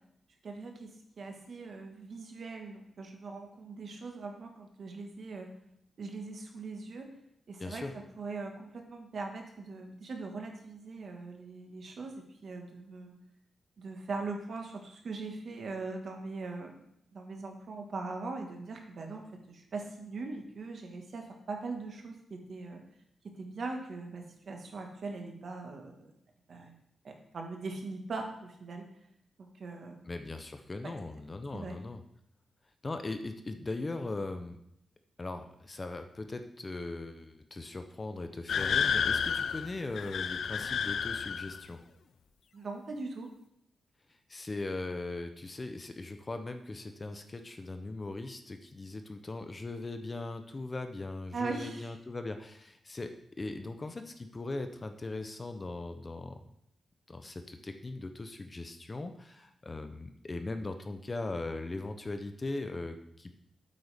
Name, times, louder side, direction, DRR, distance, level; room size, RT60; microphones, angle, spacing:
voice 1, 0.4-5.5 6.0-7.1 7.5-13.1 13.8-16.8 17.1-22.8 23.2-26.1 26.5-26.8 27.0-28.9 29.4-30.0 30.8-30.9 31.5-31.8 42.5-43.3 51.3-51.9, right 3 dB, 55° right, 3 dB, 1.4 m, -41 dB
voice 2, 7.6-7.9 30.1-32.0 32.8-34.6 35.2-41.8 44.3-56.4 57.1-63.3, left 2 dB, 25° left, 7 dB, 0.6 m, -39 dB
sound 1, 38.5-41.7, left 7 dB, 70° left, 0.4 m, -31 dB
8.5 x 8.1 x 3.4 m, 0.75 s
wide cardioid pair, 155°, 0 cm